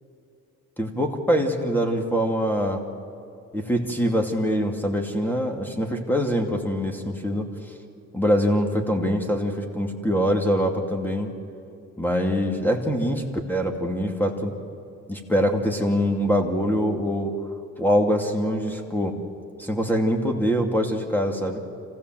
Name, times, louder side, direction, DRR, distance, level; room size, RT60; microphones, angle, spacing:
voice 1, 0.8-2.8 3.5-7.4 8.1-11.3 12.0-13.2 13.5-14.5 15.1-17.3 17.8-19.2 19.6-21.6, equal, 5° left, 3 dB, 2.6 m, -24 dB
26.5 x 15.5 x 7.7 m, 2.6 s
cardioid pair, 90°, 30 cm